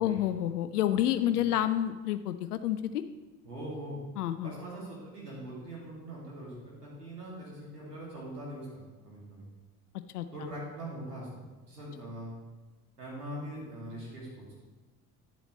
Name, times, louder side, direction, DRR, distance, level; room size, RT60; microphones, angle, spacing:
voice 1, 0.0-3.0 4.2-4.5 10.1-10.3, left 12 dB, 75° left, 11 dB, 0.5 m, -29 dB
voice 2, 3.4-4.0 4.4-8.7 9.0-9.4 10.3-11.3 11.7-12.3 13.0-14.6, right 1 dB, 90° right, -6 dB, 2.5 m, -42 dB
11.0 x 7.9 x 3.2 m, 1.2 s
figure-of-eight pair, 60°, 46 cm